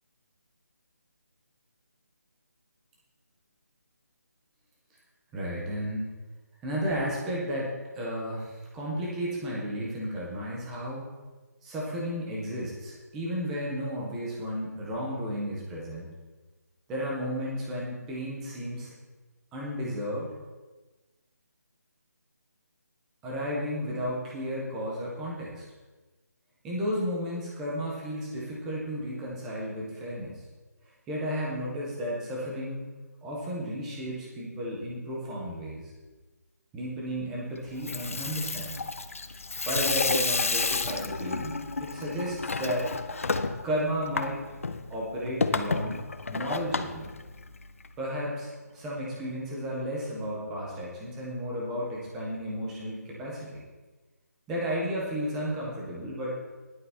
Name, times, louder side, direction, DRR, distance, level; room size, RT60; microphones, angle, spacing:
voice 1, 5.3-6.1 6.6-11.1 11.6-16.1 16.9-18.9 19.5-20.3 23.2-25.6 26.6-30.4 31.1-32.8 33.2-35.9 36.7-38.8 39.7-43.0 43.6-44.4 44.9-47.2 48.0-53.6 54.5-56.4, equal, ahead, -5 dB, 0.3 m, -33 dB
Water tap faucet / Sink (filling or washing), 37.7-47.9, left 4 dB, 50° left, 0.8 m, -31 dB
13.5 x 11.0 x 3.4 m, 1.2 s
hypercardioid pair, 180°, 9 cm